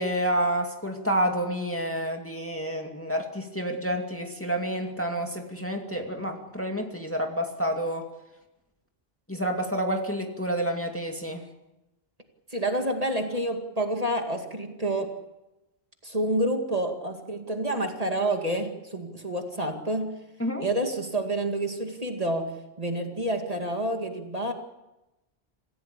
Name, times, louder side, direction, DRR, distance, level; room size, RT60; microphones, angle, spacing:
voice 1, 0.0-8.1 9.3-11.4 20.4-20.7, right 1 dB, 10° left, 2 dB, 2.3 m, -29 dB
voice 2, 12.5-15.1 16.0-20.1 20.6-22.5 22.8-24.5, right 1 dB, 35° right, 3 dB, 2.3 m, -28 dB
26.5 x 16.0 x 8.4 m, 0.97 s
omnidirectional pair, 1.1 m